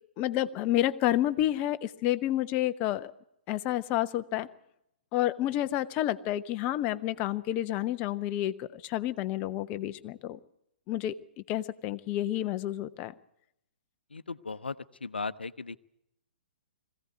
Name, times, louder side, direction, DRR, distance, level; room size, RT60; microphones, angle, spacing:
voice 1, 0.2-3.1 3.5-4.5 5.1-10.4 10.9-11.2 11.5-13.1, left 13 dB, 30° left, 12 dB, 0.8 m, -29 dB
voice 2, 14.1-14.7 15.0-15.8, left 4 dB, 75° left, 15 dB, 0.8 m, -36 dB
21.0 x 16.0 x 8.2 m, 0.80 s
figure-of-eight pair, 120°, 6 cm